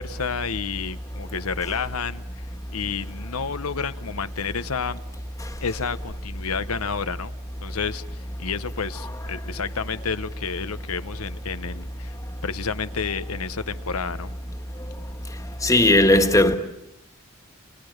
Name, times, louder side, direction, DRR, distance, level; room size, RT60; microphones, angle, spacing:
voice 1, 0.0-5.0 5.6-7.3 7.6-12.1 12.4-14.3, left 5 dB, 90° left, 1.0 m, -30 dB
voice 2, 15.6-16.6, left 1 dB, 15° left, 1.7 m, -16 dB
29.5 x 29.5 x 6.6 m
head